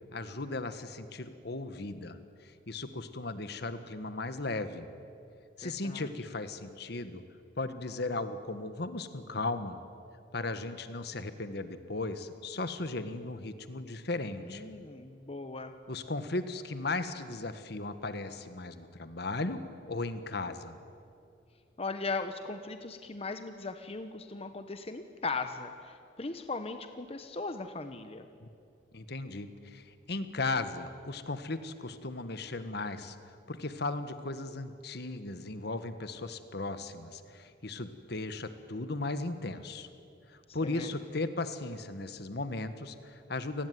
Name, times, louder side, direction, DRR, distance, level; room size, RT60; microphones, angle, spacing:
voice 1, 0.1-4.9 5.6-7.2 7.6-9.8 10.3-14.7 15.9-20.8 28.4-28.5 28.9-39.9 40.3-43.7, left 2 dB, 65° left, 10 dB, 1.5 m, -36 dB
voice 2, 5.6-6.1 14.4-15.7 21.8-28.3 40.6-40.9, left 3 dB, 35° left, 8 dB, 1.1 m, -38 dB
28.5 x 19.5 x 9.5 m, 2.5 s
head